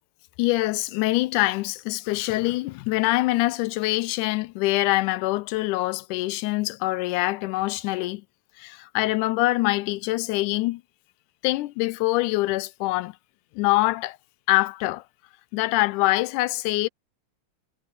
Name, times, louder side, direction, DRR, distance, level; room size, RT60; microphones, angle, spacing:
voice 1, 0.4-8.2 8.6-10.8 11.4-13.2 13.6-14.2 14.5-15.0 15.5-16.9, left 19 dB, 85° left, 2.1 m, -24 dB
omnidirectional pair, 3.5 m